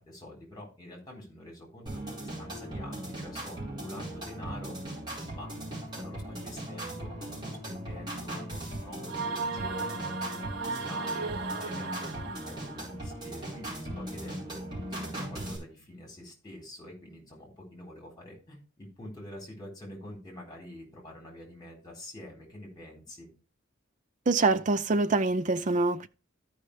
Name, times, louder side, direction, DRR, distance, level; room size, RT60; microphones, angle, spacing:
voice 1, 0.0-4.8 5.3-11.3 11.6-14.6 14.9-23.3, left 1 dB, 20° left, 3.9 m, -46 dB
sound 1, 1.9-15.6, right 1 dB, 20° right, 4.8 m, -39 dB
sound 2, 9.1-12.9, right 4 dB, 55° right, 1.4 m, -35 dB
voice 2, 24.3-26.1, right 3 dB, 40° right, 0.5 m, -25 dB
13.5 x 5.6 x 3.3 m
head